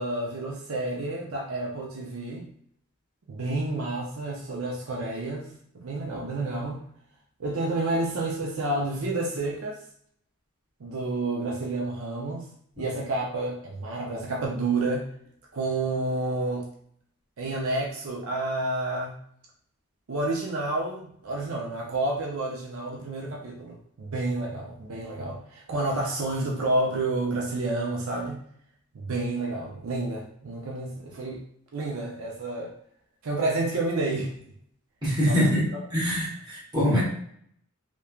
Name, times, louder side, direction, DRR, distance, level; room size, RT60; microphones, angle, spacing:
voice 1, 0.0-2.5 3.3-6.8 7.4-9.8 10.8-12.5 12.8-15.1 15.5-16.7 17.4-19.2 20.1-28.4 28.9-31.4 31.7-32.7 33.2-34.3 35.3-35.5, right 2 dB, 75° right, -1 dB, 0.5 m, -30 dB
voice 2, 35.0-35.7 35.9-37.0, equal, 20° right, -7 dB, 1.0 m, -24 dB
3.1 x 2.2 x 2.3 m, 0.65 s
head